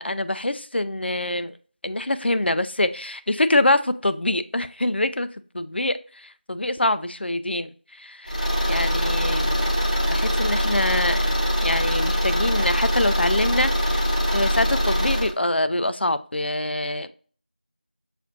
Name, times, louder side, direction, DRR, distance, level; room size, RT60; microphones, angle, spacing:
voice 1, 0.0-1.5 1.8-5.3 5.5-9.6 10.1-17.1, left 1 dB, 80° left, 12 dB, 0.4 m, -25 dB
Car / Engine, 8.3-15.3, equal, 40° left, 0.7 m, -23 dB
5.9 x 2.4 x 2.5 m, 0.43 s
figure-of-eight pair, 180°, 6 cm